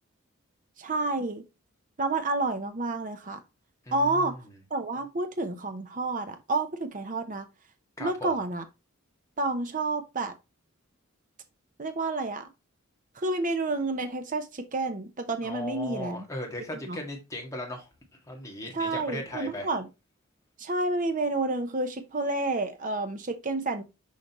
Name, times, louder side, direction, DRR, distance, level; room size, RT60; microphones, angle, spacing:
voice 1, 0.8-1.4 2.0-3.4 3.9-4.3 4.7-7.4 8.0-8.6 9.4-10.3 11.8-12.4 13.2-16.2 16.9-17.0 18.7-19.9 20.6-23.8, right 2 dB, 40° right, 0.7 m, -29 dB
voice 2, 3.8-4.5 8.0-8.4 15.4-17.9 18.3-19.7, left 1 dB, 15° left, 1.9 m, -37 dB
6.4 x 5.0 x 3.0 m
head